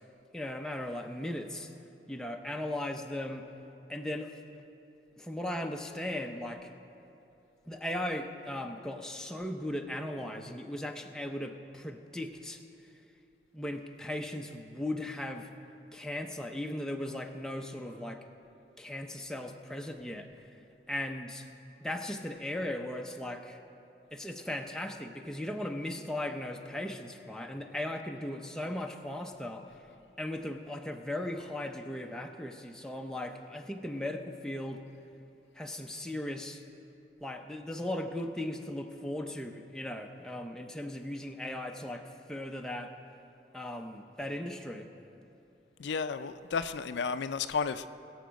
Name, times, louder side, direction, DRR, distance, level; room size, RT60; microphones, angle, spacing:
voice 1, 0.3-1.7 2.1-3.5 3.9-4.3 5.2-6.7 7.7-12.9 13.5-15.5 15.9-18.2 18.8-20.5 20.9-21.5 21.8-23.6 24.1-29.7 30.2-34.8 35.5-36.6 37.2-42.9 43.5-44.9, left 1 dB, 5° left, 3 dB, 0.6 m, -37 dB
voice 2, 45.8-47.9, left 5 dB, 80° left, 11 dB, 0.4 m, -32 dB
21.0 x 7.2 x 5.2 m, 2.9 s
head